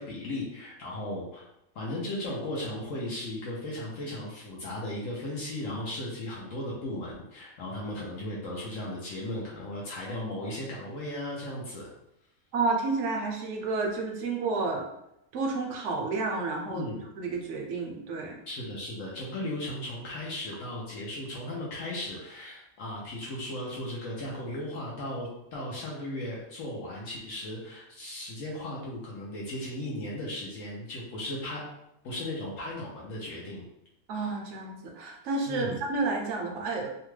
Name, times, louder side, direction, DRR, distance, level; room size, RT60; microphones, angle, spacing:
voice 1, 0.0-1.4 1.7-11.9 16.7-17.0 18.5-31.6 32.0-33.6 35.5-35.8, left 1 dB, 70° left, -4 dB, 1.0 m, -36 dB
voice 2, 12.5-14.9 15.3-16.8 17.2-18.4 34.1-36.9, right 3 dB, 70° right, 1 dB, 0.8 m, -30 dB
2.8 x 2.2 x 3.1 m, 0.82 s
omnidirectional pair, 1.5 m